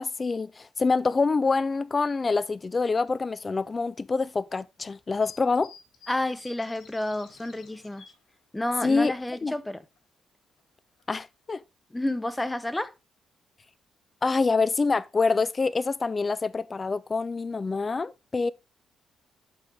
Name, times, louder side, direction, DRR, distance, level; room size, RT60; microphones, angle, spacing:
voice 1, 0.0-5.7 8.8-9.1 9.4-9.5 11.1-11.6 14.2-18.5, left 4 dB, 30° left, 0.4 m, -26 dB
sound 1, 1.7-2.0 2.6-2.7 3.7-3.8 5.1-8.3 8.8-8.9 9.1-9.2 9.7-10.0 10.6-10.7 11.0-11.2 11.6-11.7, left 4 dB, 75° left, 2.3 m, -52 dB
voice 2, 6.1-8.0 8.5-9.8 11.9-12.9, left 1 dB, 10° left, 0.9 m, -30 dB
11.5 x 5.3 x 3.4 m
cardioid pair, 90°, 0 cm